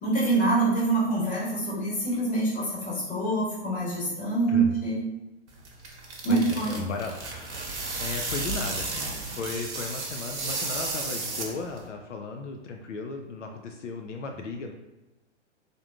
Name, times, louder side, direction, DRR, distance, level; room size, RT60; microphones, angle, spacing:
voice 1, 0.0-5.0 6.2-6.8, right 2 dB, 20° left, -6 dB, 1.3 m, -25 dB
sound 1, 5.5-11.9, right 3 dB, 65° right, 0.9 m, -33 dB
voice 2, 6.3-7.2 8.0-8.9 9.4-14.7, left 4 dB, 80° left, 3 dB, 0.5 m, -35 dB
3.6 x 2.6 x 2.4 m, 1.0 s
figure-of-eight pair, 110°, 36 cm